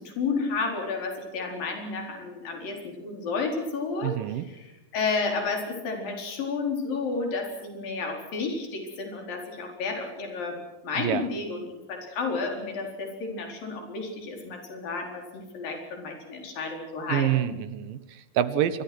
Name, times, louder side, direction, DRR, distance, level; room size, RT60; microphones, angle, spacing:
voice 1, 0.0-4.2 4.5-17.5, left 4 dB, 85° left, 3 dB, 6.1 m, -31 dB
voice 2, 4.0-4.5 11.0-11.2 17.1-18.8, right 11 dB, 80° right, 14 dB, 2.9 m, -27 dB
26.5 x 22.5 x 6.2 m, 1.0 s
omnidirectional pair, 3.9 m